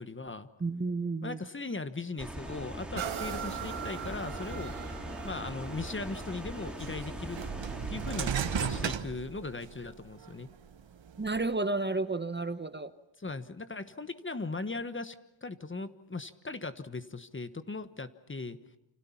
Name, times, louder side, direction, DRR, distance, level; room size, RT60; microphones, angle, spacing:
voice 1, 0.0-0.5 1.2-4.7 5.2-7.4 7.9-10.5 13.2-15.2 15.4-18.6, left 3 dB, 25° left, 12 dB, 1.3 m, -38 dB
voice 2, 0.6-1.4 11.2-12.9, right 3 dB, 25° right, 11 dB, 1.1 m, -31 dB
sound 1, 2.2-9.0, equal, ahead, 3.7 m, -41 dB
sound 2, 3.0-10.6 11.2-11.3, right 8 dB, 90° right, 1.8 m, -43 dB
sound 3, 5.8-5.9 6.8-9.9 10.4-11.4, right 8 dB, 70° right, 1.5 m, -35 dB
29.0 x 26.5 x 5.8 m, 0.83 s
wide cardioid pair, 105°, 46 cm